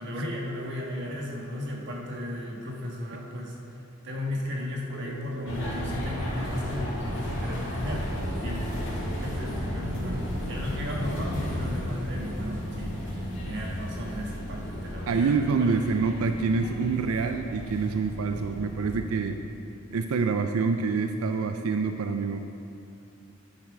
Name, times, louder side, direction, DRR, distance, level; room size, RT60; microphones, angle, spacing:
voice 1, 0.0-3.5 4.0-8.7 9.2-13.0 13.4-15.9, left 1 dB, 55° right, -2 dB, 1.5 m, -35 dB
sound 1, 4.9-15.3 15.5-16.1, right 2 dB, 80° left, 1.3 m, -48 dB
sound 2, 5.5-19.0, equal, 55° left, 2.4 m, -34 dB
voice 2, 15.1-19.4 19.9-22.4, right 4 dB, 85° right, 6 dB, 0.4 m, -26 dB
9.9 x 7.3 x 4.9 m, 2.7 s
head